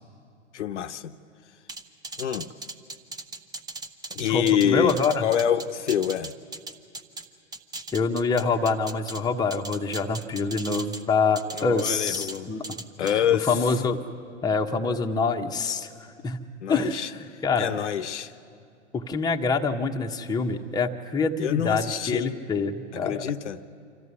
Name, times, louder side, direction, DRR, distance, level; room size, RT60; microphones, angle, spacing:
voice 1, 0.5-1.1 2.2-2.5 4.1-6.3 11.5-12.5 13.0-13.7 16.6-18.3 21.4-22.4 22.9-23.6, left 9 dB, 75° left, 9 dB, 0.9 m, -26 dB
sound 1, 1.7-7.3 7.5-9.2 9.5-11.0 11.4-12.4 12.6-13.1, right 2 dB, 10° right, 0.8 m, -38 dB
voice 2, 4.3-5.2 7.9-12.8 13.0-13.2 13.5-14.0 14.4-15.9 16.2-16.4 16.7-17.7 18.9-23.2, left 4 dB, 10° left, 2 dB, 1.0 m, -26 dB
25.5 x 14.0 x 9.7 m, 2.3 s
hypercardioid pair, 110°, 36 cm